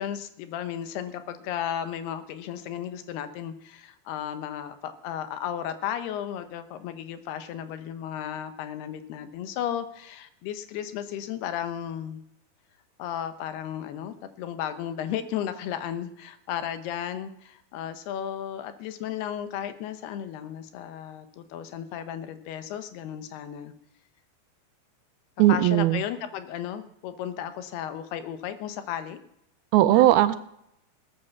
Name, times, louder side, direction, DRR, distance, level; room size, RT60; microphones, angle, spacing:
voice 1, 0.0-12.2 13.0-23.7 25.5-29.2, left 10 dB, 85° left, 9 dB, 3.1 m, -34 dB
voice 2, 25.4-26.0 29.7-30.4, right 14 dB, 80° right, 12 dB, 2.5 m, -18 dB
19.0 x 8.7 x 7.1 m, 0.79 s
omnidirectional pair, 4.5 m